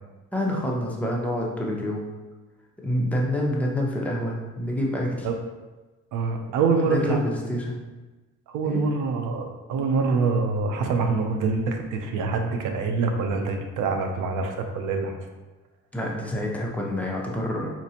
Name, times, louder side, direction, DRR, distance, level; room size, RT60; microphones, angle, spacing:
voice 1, 0.3-2.1 2.8-5.3 6.8-7.9 8.6-8.8 15.9-17.7, left 1 dB, 5° left, -3 dB, 0.7 m, -27 dB
voice 2, 6.1-7.2 8.5-15.2, right 4 dB, 85° right, 4 dB, 0.6 m, -25 dB
4.1 x 2.5 x 2.8 m, 1.2 s
cardioid pair, 90°, 30 cm